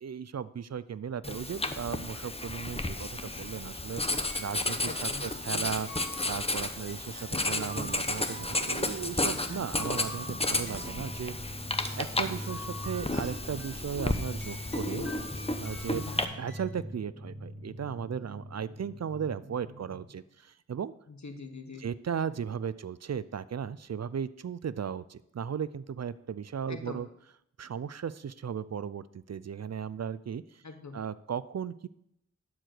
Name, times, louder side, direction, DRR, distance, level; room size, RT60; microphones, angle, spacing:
voice 1, 0.0-4.0 4.4-5.9 6.3-11.3 12.0-15.1 15.6-20.9 21.8-27.1 27.6-30.4 30.9-31.9, right 7 dB, 60° right, 17 dB, 0.5 m, -36 dB
Writing, 1.2-16.2, left 2 dB, 20° left, 0.9 m, -33 dB
sound 1, 3.3-16.7, left 1 dB, 40° left, 2.2 m, -48 dB
voice 2, 4.9-5.4 7.5-7.7 14.7-15.0 15.9-16.3 21.1-21.8 26.7-27.0 30.6-31.0, left 3 dB, 65° left, 6 dB, 1.3 m, -43 dB
sound 2, 7.6-20.0, equal, 20° right, 3.3 m, -43 dB
11.5 x 4.7 x 6.6 m, 0.77 s
cardioid pair, 40°, 30 cm